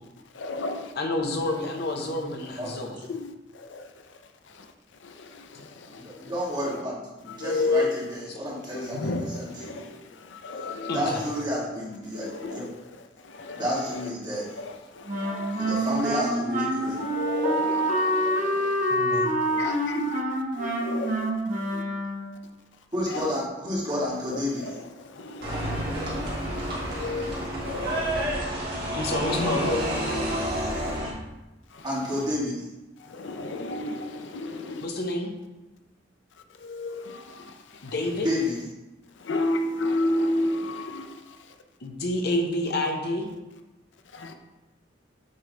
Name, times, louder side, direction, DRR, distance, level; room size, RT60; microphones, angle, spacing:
voice 1, 0.3-0.9 3.1-3.9 4.5-4.7 5.0-6.3 6.6-6.8 7.3-8.1 8.7-11.4 12.1-12.7 13.2-14.1 14.6-16.0 16.9-19.0 19.4-21.8 23.1-23.3 24.5-28.2 29.3-31.0 31.7-31.9 33.0-34.8 36.6-37.9 39.2-41.5 44.1-44.3, left 2 dB, 85° left, 0.6 m, -33 dB
voice 2, 1.0-3.0 10.8-11.3 18.9-19.3 28.9-29.9 34.8-35.3 37.8-38.3 41.8-43.3, left 1 dB, 60° left, 0.9 m, -28 dB
voice 3, 6.0-9.8 10.9-12.7 13.5-14.5 15.6-17.0 22.9-24.7 31.8-32.6 38.2-38.5, equal, 25° right, 1.8 m, -30 dB
Wind instrument woodwind instrument, 15.1-22.4, right 1 dB, 40° right, 1.3 m, -27 dB
sound 1, 25.4-31.1, right 1 dB, 60° right, 2.0 m, -29 dB
8.0 x 3.3 x 3.9 m
head